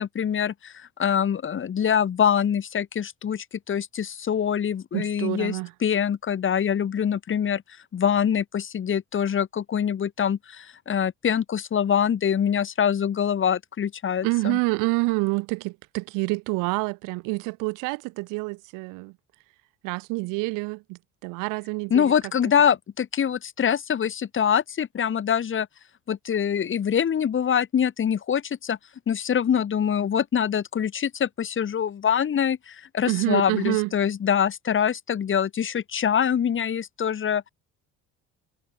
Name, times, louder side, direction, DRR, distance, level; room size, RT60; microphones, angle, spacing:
voice 1, 0.0-7.6 7.9-14.6 21.9-25.7 26.1-28.8 29.1-37.4, left 8 dB, 40° left, 3.8 m, -24 dB
voice 2, 4.9-5.7 14.2-19.1 19.8-22.1 33.1-33.9, right 27 dB, 90° right, 2.5 m, -27 dB
cardioid pair, 110°, 31 cm